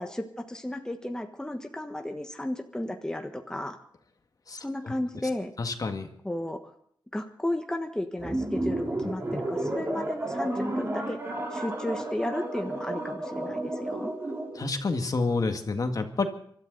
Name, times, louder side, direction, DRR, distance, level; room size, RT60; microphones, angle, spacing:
voice 1, 0.0-3.8 4.5-5.5 6.2-6.7 7.1-11.2 11.5-14.1, left 1 dB, 10° left, 5 dB, 1.4 m, -33 dB
voice 2, 5.6-6.1 14.6-16.3, left 3 dB, 50° left, 5 dB, 2.0 m, -28 dB
sound 1, 8.2-14.7, right 1 dB, 30° right, 3.9 m, -32 dB
25.0 x 13.0 x 4.0 m, 0.65 s
wide cardioid pair, 100°, 8 cm